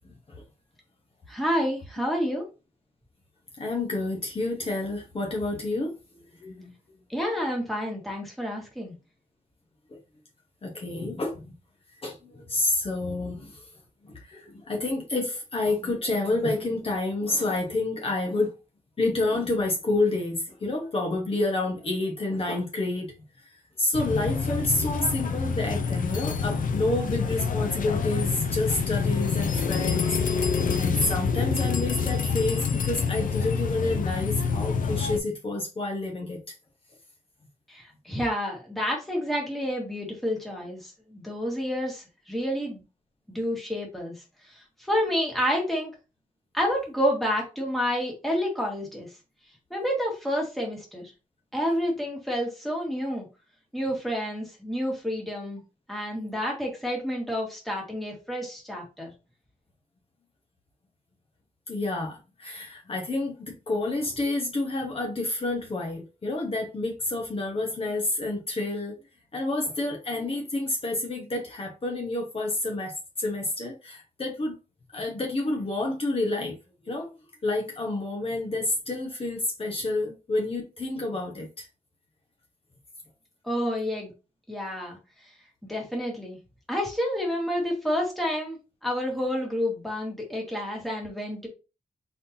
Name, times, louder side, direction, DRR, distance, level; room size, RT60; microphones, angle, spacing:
voice 1, 1.3-2.4 7.1-8.9 37.7-42.8 43.3-45.9 46.5-49.1 49.7-51.1 51.5-53.3 53.7-55.6 55.9-59.1 83.4-84.1 84.5-85.0 85.6-86.4 86.7-91.5, equal, ahead, 1.7 m, -29 dB
voice 2, 3.6-5.9 6.4-6.7 10.6-11.5 12.0-13.7 14.0-18.5 19.0-36.5 61.7-68.9 69.3-74.5 74.9-76.6 76.8-77.1 77.4-81.7, left 2 dB, 40° left, 1.2 m, -29 dB
sound 1, 23.9-35.2, left 5 dB, 70° left, 0.6 m, -27 dB
4.2 x 3.7 x 2.7 m
wide cardioid pair, 130°, 14 cm